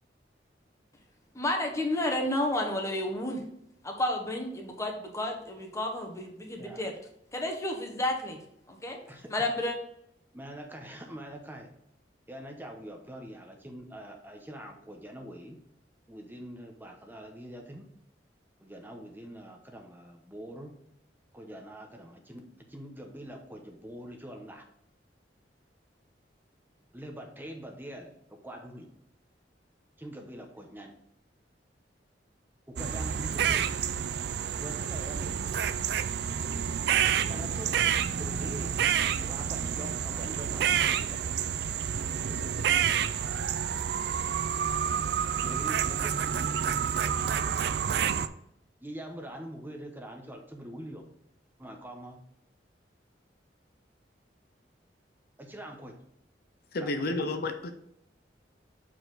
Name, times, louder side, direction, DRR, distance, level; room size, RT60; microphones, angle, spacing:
voice 1, 1.3-3.4 3.8-6.9 7.3-8.4 8.7-9.0 9.3-9.7, left 1 dB, 15° left, 2 dB, 1.1 m, -31 dB
voice 2, 6.4-6.9 9.1-9.3 10.3-11.7 12.3-15.6 16.1-17.9 18.6-20.7 21.3-24.6 26.9-28.9 30.0-30.9 32.7-33.6 34.6-35.4 37.3-37.7 38.1-38.8 39.2-41.2 45.4-46.3 48.8-51.0 51.6-52.2 55.4-55.9 56.8-57.3, right 1 dB, 10° right, 3 dB, 0.8 m, -44 dB
sound 1, 32.8-48.3, right 8 dB, 65° right, 0.4 m, -29 dB
voice 3, 56.7-57.7, left 2 dB, 60° left, 7 dB, 0.6 m, -31 dB
6.6 x 4.6 x 3.9 m, 0.77 s
head